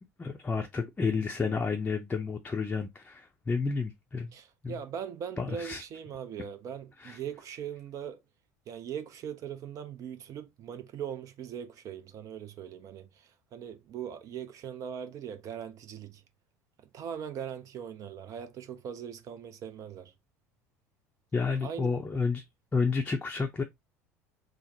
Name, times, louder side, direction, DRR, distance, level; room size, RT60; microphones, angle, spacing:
voice 1, 0.2-4.3 4.6-4.7 5.4-5.8 7.0-7.2 21.3-22.4 22.7-23.6, left 4 dB, 20° left, 0.5 m, -30 dB
voice 2, 4.3-8.2 8.7-16.2 16.9-20.1 21.6-21.9, right 8 dB, 40° right, 0.5 m, -40 dB
3.4 x 2.0 x 4.0 m
figure-of-eight pair, 65°, 8 cm